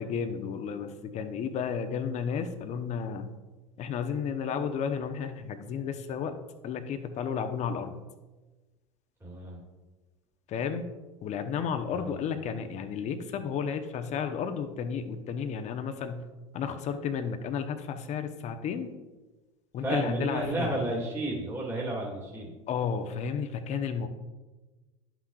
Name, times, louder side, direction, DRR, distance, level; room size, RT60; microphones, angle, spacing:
voice 1, 0.0-3.3 3.8-6.3 6.6-8.0 10.5-10.8 11.2-16.2 16.5-18.9 19.7-20.8 22.7-24.1, left 7 dB, 45° left, 7 dB, 0.8 m, -32 dB
voice 2, 9.2-9.6 11.9-12.1 19.8-22.5, right 1 dB, 15° right, -4 dB, 2.1 m, -32 dB
11.0 x 6.0 x 2.4 m, 1.2 s
hypercardioid pair, 80°, 17 cm